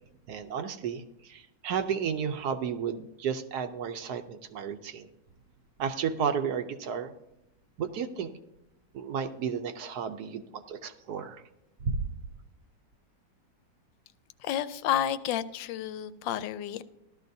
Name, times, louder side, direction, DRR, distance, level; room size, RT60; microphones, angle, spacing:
voice 1, 0.3-5.1 5.8-7.1 7.8-8.3 8.9-11.4 11.8-12.0, right 7 dB, 65° right, 8 dB, 1.1 m, -33 dB
voice 2, 14.4-16.8, left 10 dB, 85° left, 14 dB, 1.3 m, -30 dB
15.0 x 12.5 x 2.7 m, 0.86 s
omnidirectional pair, 2.0 m